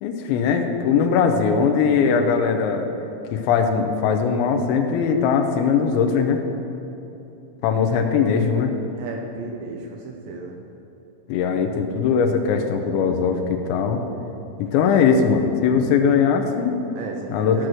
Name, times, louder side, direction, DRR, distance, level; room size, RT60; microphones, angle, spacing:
voice 1, 0.0-2.8 3.3-6.4 7.6-8.7 11.3-14.0 14.6-16.8 17.3-17.6, left 6 dB, 80° left, 4 dB, 3.0 m, -20 dB
voice 2, 9.0-10.6 17.0-17.7, right 4 dB, 75° right, 1 dB, 2.9 m, -34 dB
14.0 x 6.2 x 6.4 m, 3.0 s
omnidirectional pair, 5.5 m